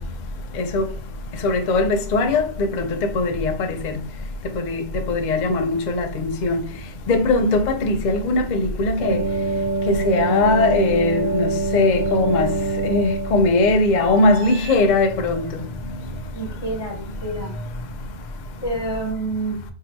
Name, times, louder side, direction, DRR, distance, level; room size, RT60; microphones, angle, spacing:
voice 1, 1.4-1.8 2.1-2.5 3.2-3.5 5.1-6.0 6.4-6.6 7.1-9.2 10.0-11.5 11.7-12.5 12.8-15.3, left 2 dB, 55° left, 0.6 m, -19 dB
sound 1, 9.0-14.8, right 3 dB, 55° right, 1.0 m, -25 dB
voice 2, 16.3-17.5 18.6-19.6, right 2 dB, 25° left, 1.1 m, -28 dB
2.8 x 2.7 x 4.3 m
omnidirectional pair, 1.1 m